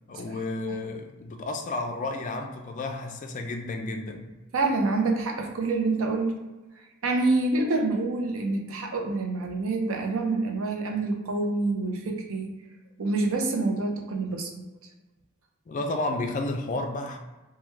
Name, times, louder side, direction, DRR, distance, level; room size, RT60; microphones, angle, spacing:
voice 1, 0.1-4.3 15.7-17.2, left 2 dB, 35° left, 4 dB, 0.3 m, -32 dB
voice 2, 4.5-6.4 7.0-12.5 13.0-14.5, right 3 dB, 75° right, 2 dB, 0.5 m, -26 dB
3.1 x 2.2 x 3.2 m, 1.1 s
head